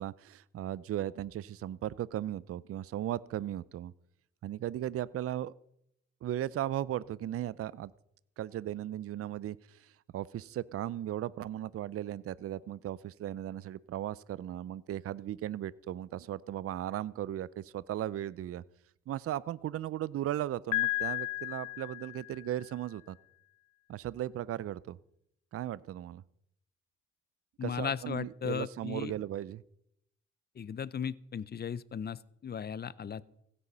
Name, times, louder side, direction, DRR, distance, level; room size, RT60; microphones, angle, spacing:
voice 1, 0.0-3.9 4.4-5.5 6.2-7.9 8.4-18.6 19.1-23.2 23.9-25.0 25.5-26.2 27.6-29.6, right 12 dB, 50° right, 21 dB, 0.5 m, -37 dB
Piano, 20.7-22.6, left 20 dB, 90° left, 0.5 m, -34 dB
voice 2, 27.6-29.1 30.6-33.3, left 7 dB, 35° left, 20 dB, 0.6 m, -36 dB
16.0 x 9.8 x 5.5 m, 0.76 s
cardioid pair, 90°, 30 cm